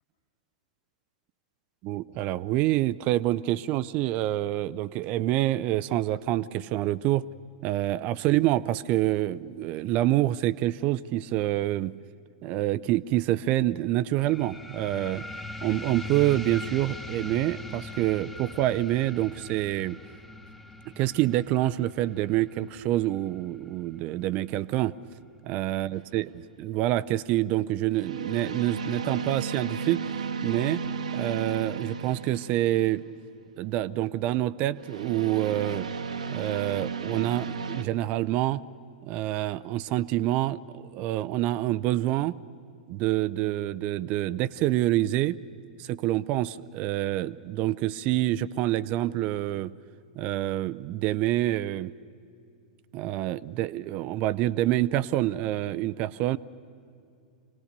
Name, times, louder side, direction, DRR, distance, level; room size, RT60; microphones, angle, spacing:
voice 1, 1.8-7.3 7.6-11.9 12.4-15.2 15.6-20.0 20.9-24.9 25.4-26.3 26.6-30.0 30.4-30.8 31.1-33.0 33.6-35.9 36.3-38.6 39.0-42.3 42.9-45.4 45.8-49.7 50.2-51.9 52.9-56.4, right 15 dB, 40° right, 18 dB, 0.5 m, -27 dB
sound 1, 14.2-25.2, left 2 dB, 5° left, 1.1 m, -42 dB
sound 2, 25.9-26.3 27.9-33.0 34.8-37.8, right 5 dB, 70° right, 1.1 m, -34 dB
26.5 x 19.0 x 6.7 m, 2.5 s
figure-of-eight pair, 95°, 4 cm